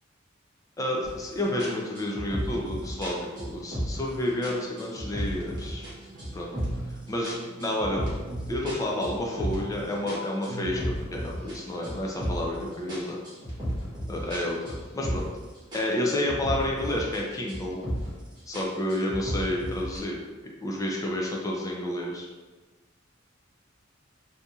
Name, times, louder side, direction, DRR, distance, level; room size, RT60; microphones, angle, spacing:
voice 1, 0.8-5.9 6.3-6.5 7.1-8.2 8.5-10.8 11.1-13.2 14.1-15.3 15.7-17.8 18.5-20.2 20.6-22.3, left 1 dB, 15° left, -2 dB, 0.4 m, -30 dB
sound 1, 1.0-1.3 1.6-4.1 4.4-5.9 6.2-6.9 7.2-9.7 10.1-12.6 12.9-15.4 15.7-17.2 17.5-18.2 18.5-20.0, equal, 20° right, 1.1 m, -34 dB
sound 2, 2.6-13.0, right 3 dB, 65° right, 0.3 m, -45 dB
2.7 x 2.5 x 3.5 m, 1.3 s
head